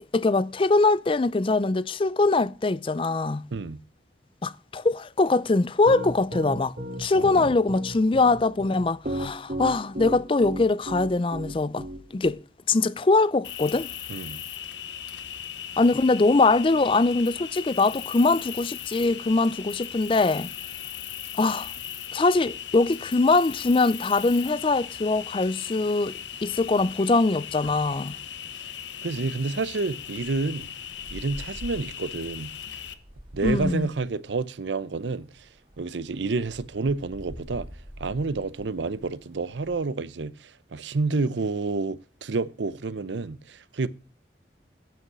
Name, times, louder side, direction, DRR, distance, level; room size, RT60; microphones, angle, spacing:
voice 1, 0.0-3.4 4.4-6.7 7.0-11.9 12.1-12.4 12.7-13.9 15.8-20.5 21.4-21.7 22.1-28.2 33.4-33.9, left 3 dB, 30° left, 0.4 m, -22 dB
Piano, 5.8-12.3, right 1 dB, 45° right, 2.0 m, -33 dB
voice 2, 7.1-7.6 14.1-14.4 28.5-28.6 29.0-30.7 31.1-32.5 33.3-35.5 35.8-37.7 38.0-43.9, right 3 dB, 80° right, 0.6 m, -29 dB
Cricket, 13.4-32.9, left 9 dB, 85° left, 0.9 m, -38 dB
Wind, 30.0-39.9, equal, 30° right, 2.6 m, -45 dB
9.1 x 8.0 x 6.1 m
head